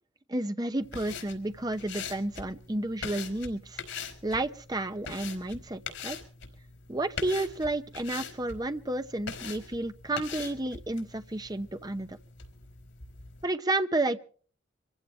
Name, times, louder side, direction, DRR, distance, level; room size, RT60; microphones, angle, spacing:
voice 1, 0.3-6.2 6.9-12.2 13.4-14.2, right 2 dB, 20° right, 9 dB, 0.8 m, -31 dB
sound 1, 0.8-13.4, left 5 dB, 85° left, 4.1 m, -43 dB
25.0 x 15.5 x 3.2 m, 0.42 s
head